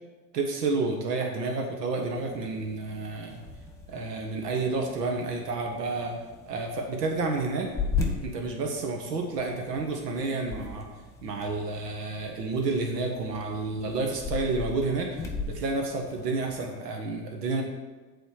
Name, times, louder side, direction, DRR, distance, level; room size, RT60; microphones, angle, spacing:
voice 1, 0.3-3.4 3.9-6.2 6.5-7.7 8.2-10.9 11.2-15.1 15.5-17.6, right 3 dB, 85° right, 2 dB, 1.5 m, -30 dB
sound 1, 2.0-16.7, left 4 dB, 5° left, 1.3 m, -38 dB
8.1 x 4.3 x 6.5 m, 1.3 s
supercardioid pair, 120°, 47 cm